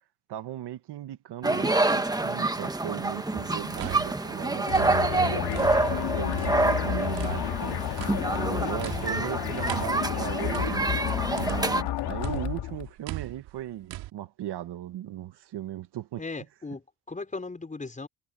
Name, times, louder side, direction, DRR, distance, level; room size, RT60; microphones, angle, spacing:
voice 1, 0.3-10.9 11.4-16.2, right 12 dB, 65° right, 1.9 m, -37 dB
sound 1, 1.4-11.8, right 2 dB, 10° right, 1.3 m, -27 dB
sound 2, 3.6-6.0 6.3-11.9 12.2-14.1, right 16 dB, 85° right, 4.0 m, -39 dB
sound 3, 4.7-12.9, left 13 dB, 65° left, 2.4 m, -31 dB
voice 2, 16.2-18.1, left 3 dB, 15° left, 5.3 m, -37 dB
cardioid pair, 120°, 44 cm